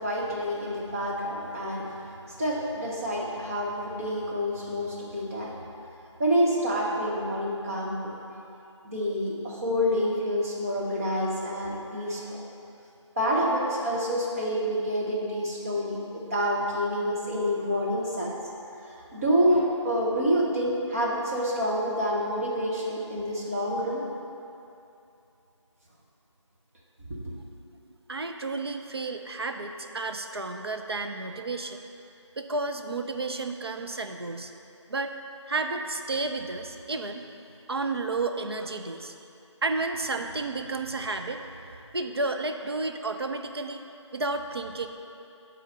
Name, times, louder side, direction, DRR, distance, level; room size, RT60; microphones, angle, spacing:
voice 1, 0.0-1.8 2.4-5.5 6.2-8.1 8.8-12.4 13.2-18.3 19.1-24.0 27.1-27.3, equal, 30° right, -5 dB, 1.2 m, -27 dB
voice 2, 28.1-31.8 32.4-34.5 34.9-35.1 35.5-37.3 37.7-39.1 39.6-41.4 41.9-43.8 44.1-44.9, right 3 dB, 55° right, 5 dB, 0.5 m, -31 dB
7.2 x 4.0 x 6.7 m, 2.7 s
figure-of-eight pair, 170°, 16 cm